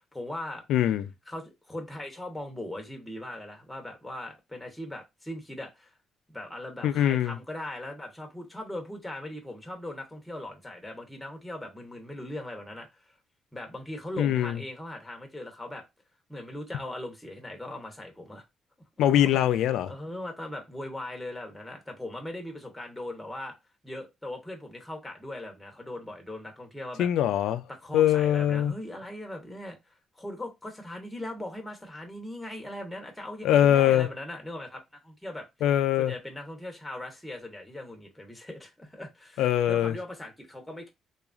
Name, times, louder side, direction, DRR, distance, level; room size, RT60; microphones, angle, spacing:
voice 1, 0.1-0.6 1.3-5.9 6.3-13.1 13.5-15.8 16.3-18.4 19.1-19.4 19.9-23.5 23.8-27.1 27.7-35.5 36.0-40.9, left 1 dB, 5° left, 0.9 m, -39 dB
voice 2, 0.7-1.1 6.8-7.4 14.2-14.6 19.0-19.9 27.0-27.6 27.9-28.7 33.4-34.1 35.6-36.1 39.4-39.9, left 11 dB, 85° left, 0.3 m, -22 dB
3.0 x 2.4 x 2.3 m
cardioid pair, 90°, 0 cm